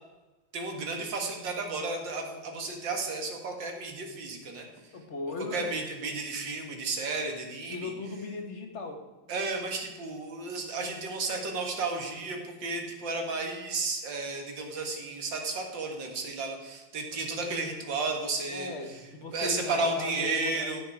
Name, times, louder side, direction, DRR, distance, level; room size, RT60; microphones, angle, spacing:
voice 1, 0.5-4.7 5.4-7.9 9.3-19.0 19.3-20.8, right 3 dB, 65° right, 3 dB, 2.2 m, -33 dB
voice 2, 4.9-5.8 7.7-9.0 18.5-20.7, left 3 dB, 40° left, 4 dB, 1.4 m, -37 dB
15.5 x 6.3 x 4.5 m, 1.2 s
omnidirectional pair, 2.2 m